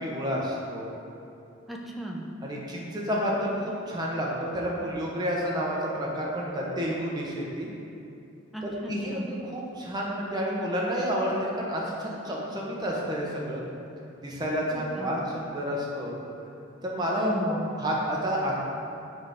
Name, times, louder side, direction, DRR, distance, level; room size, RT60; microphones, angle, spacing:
voice 1, 0.0-0.9 2.4-7.7 8.9-13.6 14.2-16.1 16.8-17.3 17.8-18.5, equal, 20° right, -4 dB, 0.9 m, -30 dB
voice 2, 1.7-2.3 8.5-9.3 14.7-15.1 17.2-17.7, right 1 dB, ahead, -1 dB, 0.5 m, -35 dB
6.5 x 3.5 x 5.0 m, 2.7 s
head